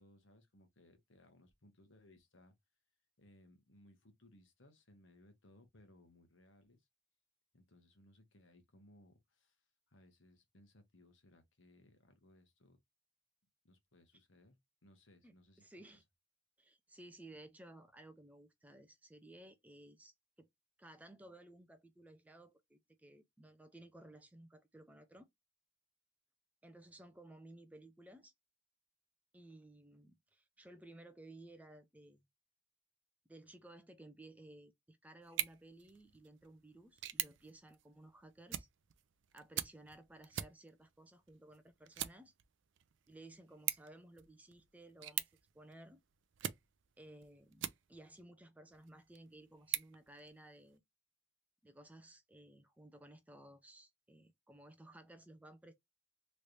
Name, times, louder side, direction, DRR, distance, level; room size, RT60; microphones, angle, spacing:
voice 1, 0.0-2.5 3.2-6.9 7.5-12.8 13.6-15.6, left 1 dB, 65° left, 1.1 m, -65 dB
voice 2, 15.2-16.0 16.6-20.5 20.8-25.3 26.6-28.3 29.3-32.2 33.3-38.7 39.3-42.3 43.1-45.3 45.5-46.0 47.0-50.8 51.6-55.7, right 1 dB, 5° right, 0.5 m, -57 dB
sound 1, 35.2-48.2 48.7-50.8, right 12 dB, 60° right, 0.4 m, -45 dB
3.2 x 3.2 x 2.5 m
head